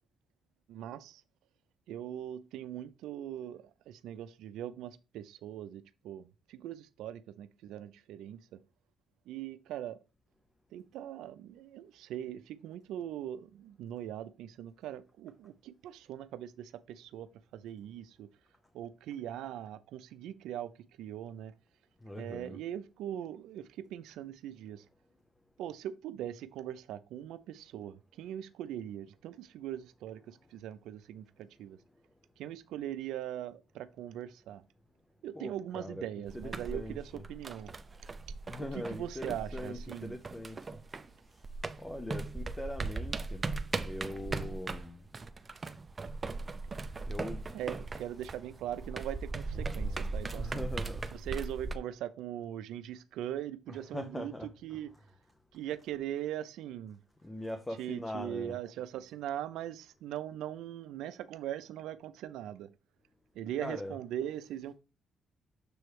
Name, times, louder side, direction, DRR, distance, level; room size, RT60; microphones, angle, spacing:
voice 1, 0.7-1.2 1.9-8.6 9.3-10.0 10.7-18.3 18.7-21.5 22.2-24.8 25.6-31.8 32.4-34.6 35.2-37.7 38.6-40.2 47.5-50.7 51.1-54.3 54.6-55.0 55.5-57.0 57.8-62.7 63.3-64.7, right 11 dB, 85° right, 0.5 m, -41 dB
voice 2, 22.0-22.6 35.4-36.1 36.3-37.2 38.5-40.7 41.2-41.5 41.8-43.5 43.8-45.1 47.0-47.4 49.5-51.1 53.7-54.5 57.2-58.6 63.6-64.0, left 1 dB, 15° left, 0.7 m, -42 dB
sound 1, 36.3-41.2 41.4-51.8, right 3 dB, 30° right, 0.6 m, -38 dB
6.9 x 3.2 x 4.6 m
cardioid pair, 90°, 0 cm